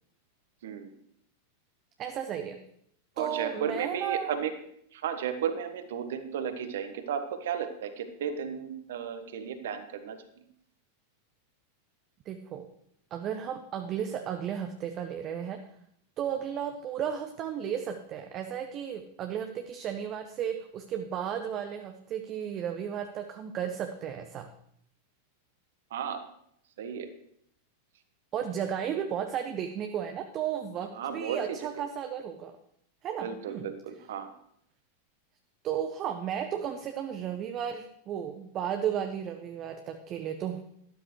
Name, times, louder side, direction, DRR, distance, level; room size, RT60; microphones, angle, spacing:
voice 1, 0.6-0.9 3.2-4.5 4.9-10.4 25.9-26.2 26.8-27.1 30.9-31.6 33.2-34.3, right 7 dB, 60° right, 9 dB, 1.3 m, -34 dB
voice 2, 2.0-2.6 3.2-4.3 12.3-12.7 13.1-15.6 16.2-24.5 28.3-32.5 33.0-33.7 35.6-40.6, right 9 dB, 35° right, 6 dB, 0.8 m, -34 dB
12.5 x 12.0 x 3.2 m, 0.70 s
figure-of-eight pair, 90°, 0 cm